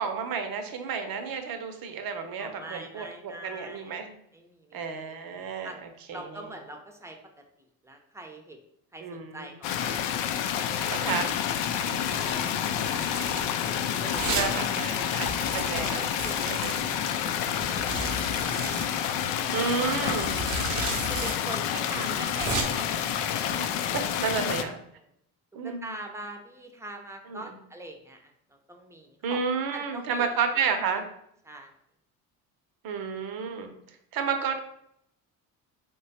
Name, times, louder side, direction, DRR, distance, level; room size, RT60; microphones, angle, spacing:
voice 1, 0.0-4.1 4.7-6.6 9.0-9.6 10.9-11.2 11.8-13.3 14.3-16.1 16.5-16.8 19.5-20.4 21.9-22.3 23.5-23.7 23.9-24.8 25.5-26.0 27.2-27.6 29.2-31.1 32.8-33.7 34.1-34.6, right 6 dB, 50° right, 6 dB, 0.7 m, -32 dB
voice 2, 2.4-4.0 4.3-5.8 6.1-7.2 7.6-8.6 8.9-10.8 13.4-15.4 15.8-16.7 17.4-18.4 19.0-19.4 19.8-20.1 21.1-23.5 25.6-30.4 30.7-31.0 31.4-31.7, right 1 dB, 5° right, 3 dB, 0.6 m, -43 dB
sound 1, 9.6-24.6, left 9 dB, 70° left, 0.5 m, -29 dB
Domestic sounds home sounds, 12.0-12.3 12.8-13.5 14.1-14.5 14.8-14.9 15.1-16.8 17.6-18.9 19.8-21.3 21.6-21.7 22.1-22.6, right 3 dB, 80° right, 0.8 m, -34 dB
3.1 x 2.3 x 4.1 m, 0.71 s
hypercardioid pair, 60°, 45 cm